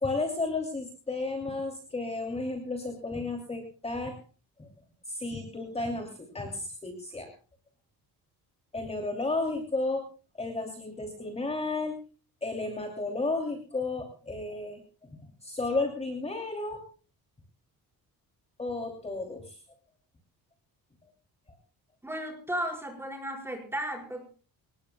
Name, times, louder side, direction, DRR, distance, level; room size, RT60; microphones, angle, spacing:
voice 1, 0.0-4.2 4.6-4.7 5.1-7.3 8.7-10.0 10.4-11.9 12.4-14.8 15.4-16.8 18.6-19.6, left 3 dB, 15° left, 4 dB, 2.9 m, -33 dB
voice 2, 22.0-24.2, equal, 5° right, 2 dB, 4.9 m, -34 dB
25.0 x 20.0 x 2.3 m, 0.37 s
cardioid pair, 155°, 37 cm